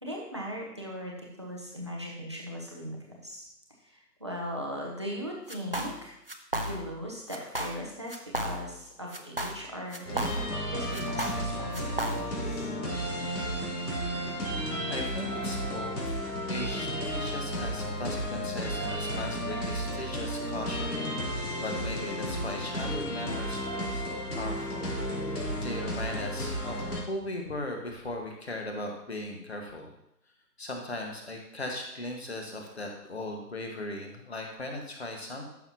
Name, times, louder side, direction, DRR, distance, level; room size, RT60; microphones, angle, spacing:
voice 1, 0.0-3.4 3.8-6.2 6.6-12.2 12.4-12.7, equal, 15° right, -2 dB, 0.9 m, -39 dB
sound 1, 5.5-6.0 6.3-7.0 7.3-7.8 8.1-8.8 9.1-10.6 10.9-12.5, right 1 dB, 35° right, 0.6 m, -34 dB
sound 2, 10.0-27.0, equal, 65° left, 3.8 m, -33 dB
voice 2, 14.9-16.2 16.5-21.3 21.6-24.9 25.6-29.9 30.6-35.5, left 1 dB, 40° left, 2 dB, 1.7 m, -38 dB
13.5 x 6.7 x 2.9 m, 0.80 s
figure-of-eight pair, 155°, 49 cm